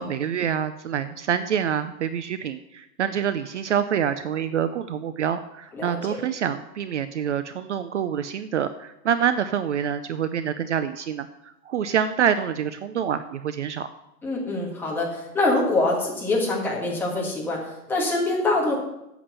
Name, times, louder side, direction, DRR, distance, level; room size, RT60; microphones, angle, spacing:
voice 1, 0.0-11.3 11.7-13.9, right 8 dB, 55° right, 12 dB, 0.6 m, -26 dB
voice 2, 5.7-6.2 14.2-18.8, left 2 dB, 5° left, -3 dB, 1.4 m, -25 dB
8.7 x 7.2 x 6.9 m, 0.88 s
hypercardioid pair, 165°, 45 cm